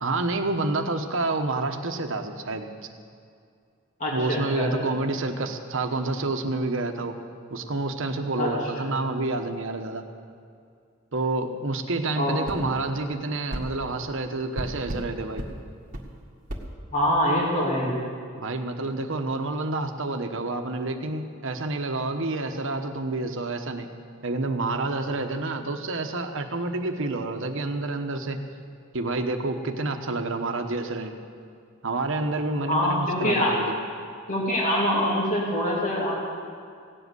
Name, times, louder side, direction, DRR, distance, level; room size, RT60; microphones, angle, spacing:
voice 1, 0.0-2.7 4.1-7.2 7.5-10.1 11.1-15.5 18.4-23.9 24.2-28.4 28.9-31.1 31.8-33.8, right 2 dB, 70° right, 5 dB, 1.1 m, -28 dB
voice 2, 4.0-4.9 8.4-8.5 8.9-9.0 12.2-12.6 16.9-17.9 32.7-33.6 34.3-36.1, left 1 dB, 40° left, -4 dB, 2.7 m, -25 dB
sound 1, 12.4-12.6 13.5-13.7 14.5-15.1 15.4-15.5 15.9-16.1 16.5-16.7, right 1 dB, 40° right, 1.8 m, -33 dB
17.0 x 7.9 x 9.5 m, 2.3 s
head